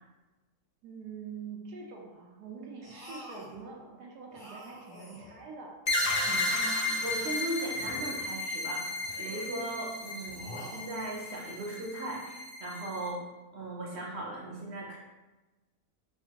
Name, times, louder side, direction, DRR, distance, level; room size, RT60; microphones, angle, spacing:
voice 1, 0.8-5.7 6.2-6.6, right 5 dB, 80° right, 0 dB, 1.2 m, -45 dB
sound 1, 2.8-3.6 4.3-5.4 5.9-7.3 7.7-8.5 9.0-9.7 10.3-11.3, equal, 15° left, 0.5 m, -48 dB
sound 2, 5.9-13.1, left 2 dB, 65° left, 0.4 m, -33 dB
voice 2, 6.5-13.2 13.5-15.0, right 2 dB, 50° right, -3 dB, 0.9 m, -38 dB
4.7 x 2.5 x 2.8 m, 1.1 s
omnidirectional pair, 1.7 m